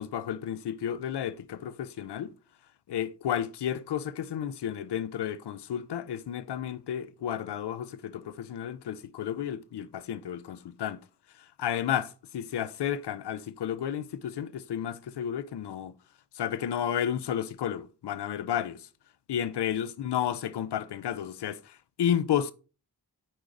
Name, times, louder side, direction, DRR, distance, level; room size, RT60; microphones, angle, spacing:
voice 1, 0.0-2.3 2.9-11.0 11.6-15.9 16.4-18.8 19.3-22.5, left 9 dB, 90° left, 0.5 m, -32 dB
8.6 x 4.6 x 2.5 m
cardioid pair, 45°, 40 cm